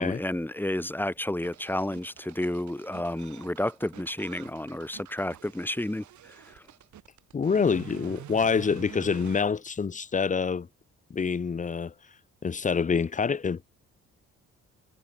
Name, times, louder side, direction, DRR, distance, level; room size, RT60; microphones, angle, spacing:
voice 1, 0.0-6.6, left 1 dB, 5° left, 3.3 m, -31 dB
sound 1, 1.4-9.4, right 11 dB, 75° right, 6.3 m, -47 dB
voice 2, 7.3-10.7 11.1-11.9 12.4-13.7, left 5 dB, 25° left, 0.8 m, -26 dB
cardioid pair, 90°, 30 cm